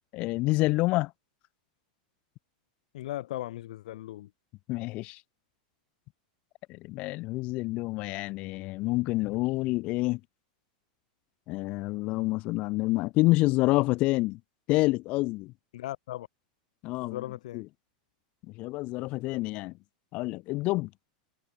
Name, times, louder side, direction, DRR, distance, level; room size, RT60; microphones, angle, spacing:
voice 1, 0.1-1.1 4.7-5.2 6.7-10.2 11.5-14.4 14.7-15.5 16.8-17.2 17.5-17.6 18.6-19.7 20.1-20.9, left 21 dB, 30° left, 3.0 m, -28 dB
voice 2, 2.9-4.3 15.7-16.3 17.0-17.6, left 14 dB, 60° left, 7.2 m, -37 dB
supercardioid pair, 180°, 4 cm